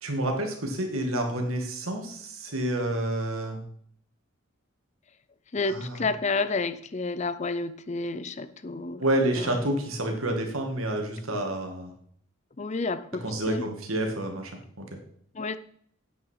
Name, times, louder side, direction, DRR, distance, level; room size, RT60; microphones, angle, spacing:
voice 1, 0.0-3.6 5.7-6.0 9.0-11.9 13.2-14.5 14.8-14.9, right 1 dB, 85° right, 2.3 m, -29 dB
voice 2, 5.5-9.0 9.4-9.5 12.6-13.7 15.3-15.6, left 3 dB, 35° left, 0.5 m, -30 dB
9.6 x 8.1 x 4.8 m
head